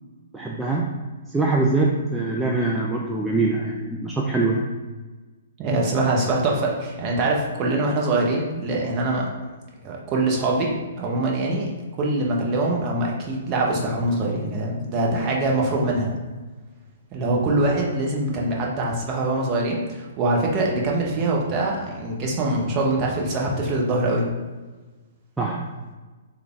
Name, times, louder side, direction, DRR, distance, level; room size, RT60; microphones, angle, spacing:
voice 1, 0.3-0.9 1.3-4.6 25.4-25.7, right 3 dB, 5° right, -3 dB, 0.3 m, -23 dB
voice 2, 5.6-9.3 9.8-10.7 11.0-11.7 12.0-16.1 17.1-24.2, right 2 dB, 30° right, -2 dB, 0.8 m, -23 dB
3.3 x 2.3 x 3.6 m, 1.3 s
figure-of-eight pair, 125°, 0 cm